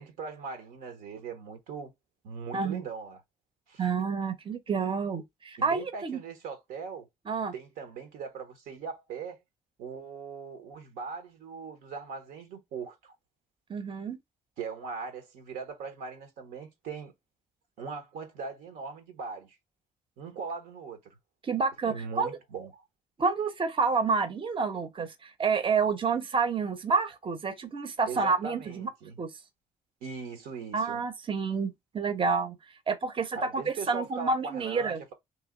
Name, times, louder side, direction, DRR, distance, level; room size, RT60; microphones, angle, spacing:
voice 1, 0.0-1.9 2.2-3.2 3.7-3.8 5.6-7.1 7.5-9.4 9.8-13.1 14.6-17.1 17.8-19.6 20.2-21.2 21.8-22.8 28.1-29.2 30.0-31.0 33.3-35.1, right 5 dB, 80° right, 1.0 m, -40 dB
voice 2, 3.8-6.2 7.3-7.5 13.7-14.2 21.4-22.3 23.2-28.9 29.2-29.3 30.7-32.6 32.9-35.0, right 5 dB, 35° right, 0.8 m, -29 dB
3.1 x 2.9 x 3.7 m
hypercardioid pair, 50°, 15 cm